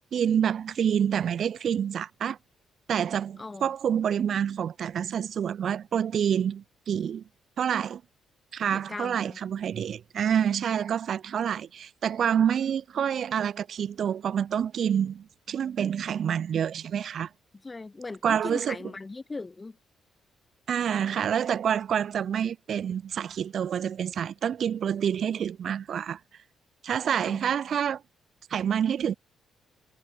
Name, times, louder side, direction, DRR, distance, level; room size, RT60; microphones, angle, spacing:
voice 1, 0.1-2.4 2.9-7.2 7.6-8.0 8.5-17.3 18.2-18.8 20.7-26.2 26.8-28.0 28.5-29.1, right 8 dB, 60° right, 2.0 m, -27 dB
voice 2, 3.4-3.7 8.7-9.4 17.6-19.8 27.2-27.4, left 3 dB, 25° left, 5.5 m, -38 dB
cardioid pair, 90°, 0 cm